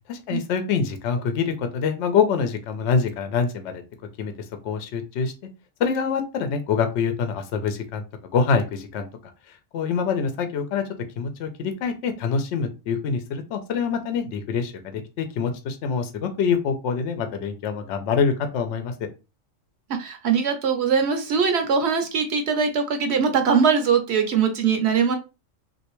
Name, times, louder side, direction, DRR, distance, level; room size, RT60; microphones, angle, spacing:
voice 1, 0.1-3.8 4.2-4.3 4.6-5.3 5.8-8.0 8.3-9.1 9.7-10.8 11.2-19.1, left 6 dB, 70° left, 7 dB, 0.8 m, -25 dB
voice 2, 20.0-25.2, right 6 dB, 65° right, 6 dB, 0.8 m, -21 dB
3.2 x 2.6 x 3.0 m, 0.29 s
omnidirectional pair, 1.3 m